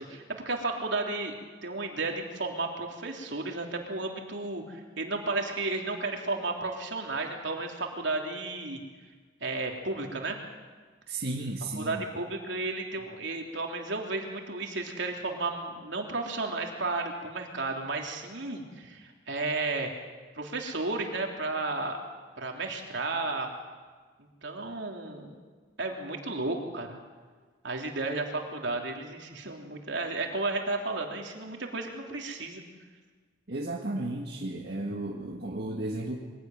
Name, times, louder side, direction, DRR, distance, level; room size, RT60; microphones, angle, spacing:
voice 1, 0.0-1.4 1.6-8.8 9.4-10.4 11.7-20.0 20.3-22.0 22.4-23.5 24.4-25.3 25.8-27.0 27.6-32.6, right 3 dB, 75° right, 2 dB, 3.3 m, -33 dB
voice 2, 11.1-12.0 33.5-36.2, right 2 dB, 55° right, -1 dB, 1.9 m, -34 dB
23.5 x 16.5 x 9.3 m, 1.5 s
head